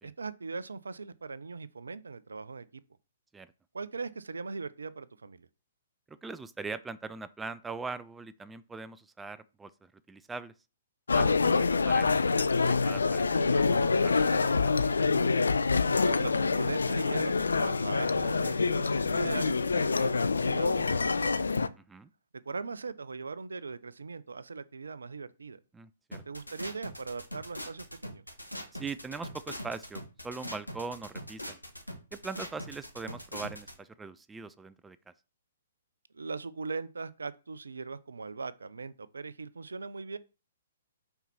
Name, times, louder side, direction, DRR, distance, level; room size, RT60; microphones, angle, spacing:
voice 1, 0.0-2.8 3.7-5.5 16.0-21.5 22.5-25.6 26.3-28.2 36.1-40.2, right 4 dB, 70° right, 0.6 m, -40 dB
voice 2, 6.1-10.5 11.1-15.1 21.9-22.1 25.7-26.2 28.7-31.6 32.1-35.0, right 4 dB, 10° right, 0.4 m, -42 dB
sound 1, 11.1-21.7, left 4 dB, 70° left, 0.5 m, -26 dB
sound 2, 26.1-33.7, equal, 90° left, 1.5 m, -41 dB
5.7 x 4.5 x 5.7 m
figure-of-eight pair, 120°, 0 cm